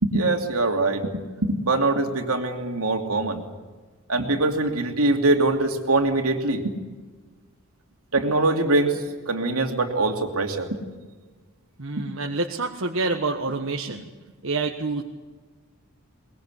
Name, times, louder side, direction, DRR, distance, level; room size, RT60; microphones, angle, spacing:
voice 1, 0.0-3.4 4.1-6.6 8.1-9.0 9.3-10.7, right 2 dB, 85° right, 3 dB, 2.8 m, -23 dB
voice 2, 11.8-14.1 14.4-15.0, right 3 dB, 65° right, 2 dB, 1.4 m, -27 dB
22.5 x 21.0 x 8.3 m, 1.3 s
head